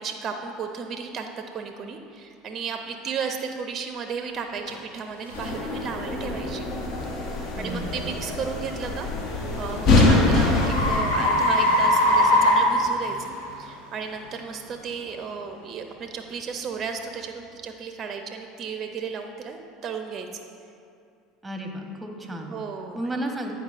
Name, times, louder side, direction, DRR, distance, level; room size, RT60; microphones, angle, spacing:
voice 1, 0.0-6.6 7.6-9.1 9.6-20.3 22.5-23.0, right 6 dB, 40° right, 5 dB, 0.4 m, -34 dB
sound 1, 4.7-4.8 5.3-5.5 6.1-6.4 9.0-13.5, left 1 dB, 85° left, 0.8 m, -22 dB
sound 2, 5.3-11.0, left 2 dB, 55° left, 0.8 m, -24 dB
voice 2, 7.5-8.1 21.4-22.5 22.9-23.5, right 1 dB, 10° right, 3 dB, 0.8 m, -33 dB
8.7 x 4.5 x 2.4 m, 2.5 s
hypercardioid pair, 75°, 0 cm